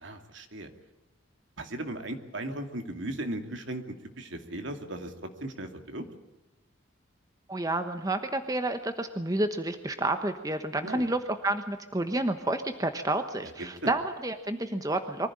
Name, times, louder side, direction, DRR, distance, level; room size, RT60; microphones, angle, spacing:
voice 1, 0.0-0.7 1.6-5.1 5.4-6.1 10.8-11.0 13.4-13.9, right 1 dB, 65° right, 6 dB, 2.6 m, -37 dB
voice 2, 7.5-15.3, right 2 dB, 20° right, 8 dB, 1.1 m, -30 dB
24.0 x 15.5 x 8.8 m, 1.0 s
head